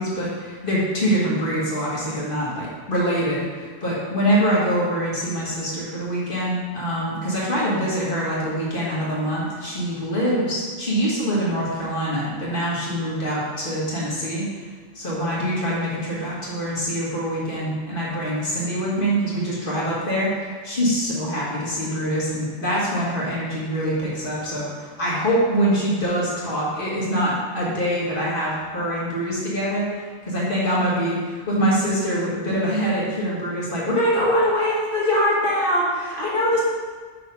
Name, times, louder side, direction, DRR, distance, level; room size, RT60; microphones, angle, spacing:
voice 1, 0.0-14.4 15.0-24.7 25.0-29.9 30.3-36.6, equal, 50° left, -6 dB, 1.9 m, -24 dB
5.8 x 4.4 x 5.4 m, 1.5 s
omnidirectional pair, 1.2 m